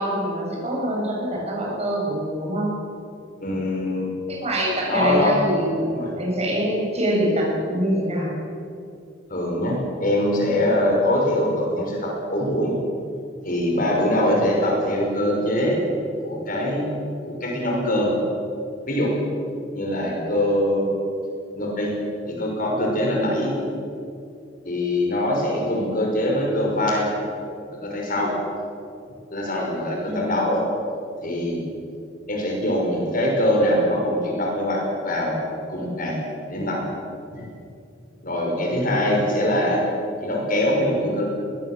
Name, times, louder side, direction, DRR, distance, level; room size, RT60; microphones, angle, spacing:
voice 1, 0.0-2.7 4.3-8.3 30.1-30.2, equal, 35° right, -2 dB, 7.1 m, -24 dB
voice 2, 3.4-4.1 4.8-5.3 5.9-6.1 9.3-12.7 13.4-15.8 16.2-16.8 17.2-18.1 18.9-19.1 19.7-20.9 21.6-21.9 22.3-23.5 24.6-27.1 27.8-28.3 29.3-30.6 31.2-31.6 32.3-35.4 35.7-36.2 36.5-36.8 37.3-37.4 38.2-39.8 40.2-41.2, left 1 dB, 45° left, -1 dB, 6.0 m, -23 dB
22.0 x 20.0 x 7.7 m, 2.5 s
head